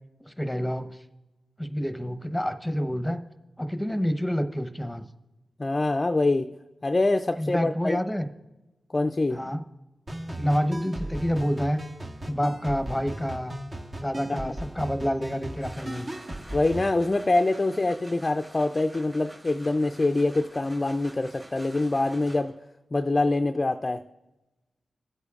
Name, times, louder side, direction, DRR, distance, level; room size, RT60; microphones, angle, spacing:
voice 1, 0.2-1.0 1.6-3.2 3.6-5.0 7.4-8.3 9.3-9.6 10.4-11.8 12.3-13.6 14.0-16.1, equal, 5° left, 0.9 m, -28 dB
voice 2, 5.6-6.5 6.8-8.0 8.9-9.4 14.5-14.6 16.5-22.5 22.9-24.0, left 2 dB, 35° left, 0.4 m, -25 dB
sound 1, 10.1-16.9, right 1 dB, 50° right, 1.6 m, -37 dB
sound 2, 15.4-22.7, right 1 dB, 25° right, 2.8 m, -48 dB
19.0 x 8.1 x 2.4 m
supercardioid pair, 40°, 0 cm